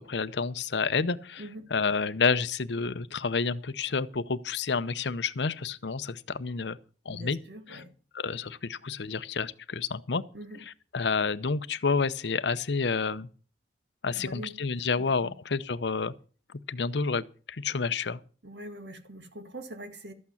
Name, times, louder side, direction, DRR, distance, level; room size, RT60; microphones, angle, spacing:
voice 1, 0.0-1.4 1.7-6.8 7.1-7.4 7.7-7.8 8.1-10.2 10.7-13.3 14.0-16.1 16.7-18.2, left 5 dB, 85° left, 0.7 m, -29 dB
voice 2, 7.1-7.9 10.3-10.6 14.1-14.6 15.2-15.3 18.4-20.1, right 1 dB, 85° right, 2.1 m, -43 dB
13.0 x 8.6 x 7.1 m
head